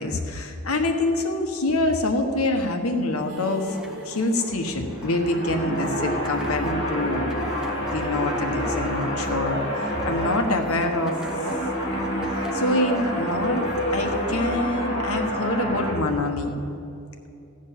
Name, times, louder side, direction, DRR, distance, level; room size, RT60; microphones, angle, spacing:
voice 1, 0.0-3.8 4.0-7.5 7.9-11.2 11.9-12.0 12.3-13.6 13.9-16.5, left 2 dB, 85° left, 5 dB, 1.2 m, -25 dB
sound 1, 3.1-14.3, equal, 5° right, 0.8 m, -43 dB
sound 2, 3.3-7.4 7.7-7.8 8.1-8.2, right 1 dB, 85° right, 1.6 m, -42 dB
sound 3, 4.8-15.9, equal, 30° left, 2.4 m, -28 dB
15.5 x 5.3 x 8.8 m, 2.7 s
head